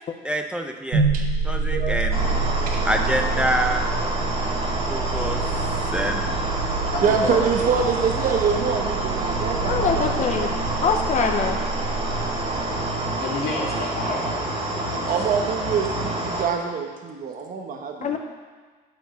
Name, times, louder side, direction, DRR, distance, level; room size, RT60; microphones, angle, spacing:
voice 1, 0.2-1.0 1.4-2.4 2.9-3.8 4.9-5.4 5.9-6.2, equal, 5° right, 4 dB, 0.6 m, -26 dB
sound 1, 0.9-13.0, right 3 dB, 70° right, 2.0 m, -28 dB
voice 2, 1.7-2.1 2.7-2.8 7.0-10.5 15.1-18.2, right 6 dB, 55° right, 3 dB, 0.9 m, -25 dB
sound 2, 2.1-16.4, right 2 dB, 35° right, 1.8 m, -27 dB
voice 3, 6.9-7.6 13.2-15.4, left 3 dB, 70° left, -3 dB, 2.3 m, -31 dB
voice 4, 9.6-10.5 10.8-11.6 18.0-18.2, left 6 dB, 45° left, 4 dB, 0.7 m, -23 dB
9.5 x 4.5 x 6.3 m, 1.4 s
cardioid pair, 110°, 17 cm